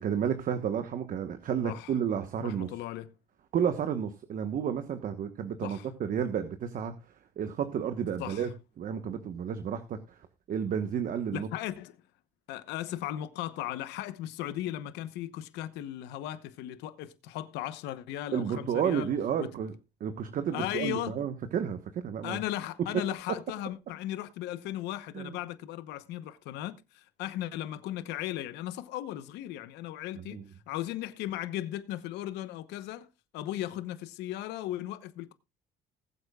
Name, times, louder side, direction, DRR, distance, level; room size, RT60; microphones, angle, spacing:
voice 1, 0.0-2.7 3.5-6.9 7.4-8.5 8.8-10.0 10.5-11.5 18.3-19.7 20.0-22.4 22.9-23.0 25.1-25.3 30.1-30.4, right 8 dB, 55° right, 1.2 m, -31 dB
voice 2, 1.6-1.9 2.4-3.1 5.6-5.9 8.2-8.5 11.3-12.0 12.5-19.1 19.4-19.5 20.5-21.1 22.2-30.4 30.7-33.1 33.3-35.3, left 13 dB, 90° left, 0.9 m, -37 dB
20.0 x 8.0 x 2.3 m
cardioid pair, 110°, 17 cm